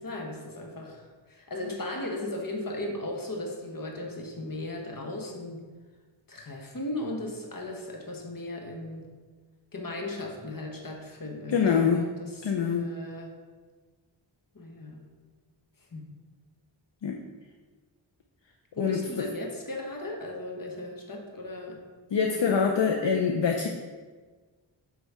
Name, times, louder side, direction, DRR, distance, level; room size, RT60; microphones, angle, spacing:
voice 1, 0.0-5.6 6.3-9.1 9.7-13.3 14.5-15.1 15.9-16.1 18.7-21.8 22.3-22.5, left 1 dB, 45° left, 1 dB, 1.3 m, -37 dB
voice 2, 11.5-12.1 12.4-12.9 17.0-17.2 18.8-19.3 22.1-23.7, left 6 dB, 65° left, 2 dB, 0.7 m, -25 dB
8.0 x 3.3 x 5.5 m, 1.4 s
wide cardioid pair, 85°, 47 cm